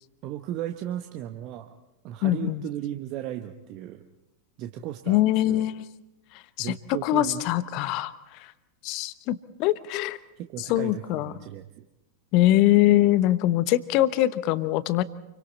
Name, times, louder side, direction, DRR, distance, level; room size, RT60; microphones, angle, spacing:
voice 1, 0.2-1.8 2.0-4.0 4.6-5.7 6.6-7.4 10.4-11.8, right 12 dB, 40° right, 6 dB, 1.1 m, -36 dB
voice 2, 2.2-2.6 5.1-5.9 6.6-6.7 7.0-8.1 8.8-10.2 10.7-11.3 12.3-15.0, left 15 dB, 40° left, 15 dB, 1.0 m, -22 dB
29.0 x 24.0 x 4.2 m, 0.97 s
figure-of-eight pair, 90°, 0 cm